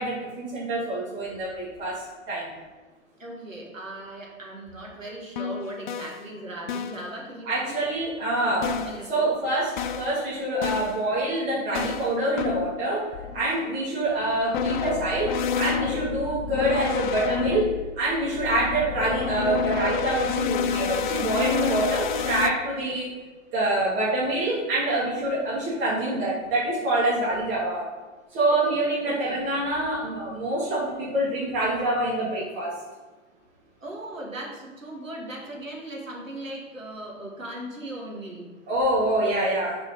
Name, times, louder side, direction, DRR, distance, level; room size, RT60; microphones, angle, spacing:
voice 1, 0.0-2.5 7.5-8.7 9.0-13.0 13.3-17.7 18.0-23.1 23.5-27.8 28.3-32.7 38.7-39.8, right 1 dB, 45° right, -8 dB, 2.4 m, -26 dB
voice 2, 3.2-7.8 8.5-9.3 28.5-28.8 29.1-29.4 33.8-38.5, right 1 dB, 80° right, -2 dB, 2.1 m, -38 dB
sound 1, 5.1-5.2 5.4-6.2 6.7-7.0 8.6-9.1 9.8-10.2 10.6-11.0 11.7-12.8 13.1-13.6 14.5-22.5, left 7 dB, 40° left, 0.4 m, -29 dB
6.4 x 4.8 x 5.4 m, 1.3 s
figure-of-eight pair, 100°, 39 cm